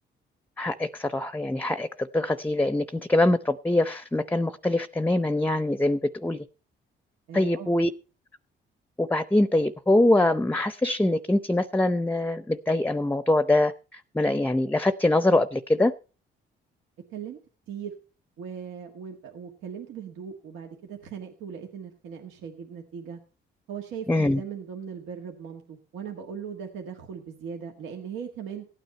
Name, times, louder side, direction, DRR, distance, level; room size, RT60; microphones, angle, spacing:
voice 1, 0.6-6.4 7.3-7.9 9.0-15.9 24.1-24.4, left 1 dB, 10° left, 14 dB, 0.6 m, -24 dB
voice 2, 7.3-7.7 17.1-17.4 17.7-17.9 18.4-23.2 23.7-28.7, right 7 dB, 90° right, 3 dB, 1.6 m, -39 dB
16.0 x 9.3 x 4.3 m, 0.35 s
cardioid pair, 90°, 20 cm